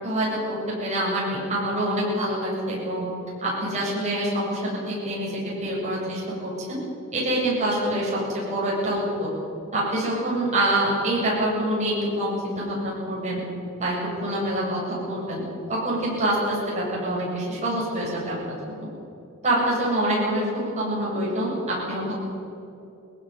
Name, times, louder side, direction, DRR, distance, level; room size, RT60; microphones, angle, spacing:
voice 1, 0.0-3.1 3.4-4.6 4.9-6.8 7.1-9.3 9.7-13.4 13.8-13.9 14.2-15.4 15.7-18.3 18.7-18.9 19.4-22.1, right 1 dB, 35° right, -5 dB, 7.8 m, -26 dB
20.5 x 16.0 x 9.8 m, 2.7 s
head